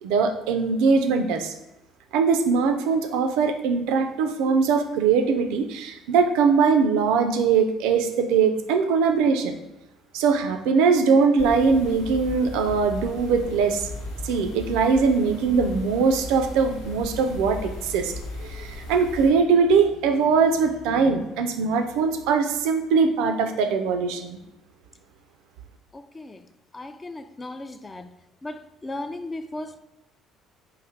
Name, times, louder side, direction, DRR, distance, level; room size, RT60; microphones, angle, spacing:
voice 1, 0.0-1.5 2.1-9.5 10.1-13.9 14.2-18.1 18.4-24.4, right 5 dB, 70° right, 0.3 m, -21 dB
sound 1, 11.4-19.3, left 2 dB, 75° left, 0.7 m, -37 dB
voice 2, 25.9-26.4 26.7-28.1 28.4-29.8, left 2 dB, 25° left, 0.3 m, -36 dB
3.1 x 2.5 x 3.8 m
hypercardioid pair, 55°, 0 cm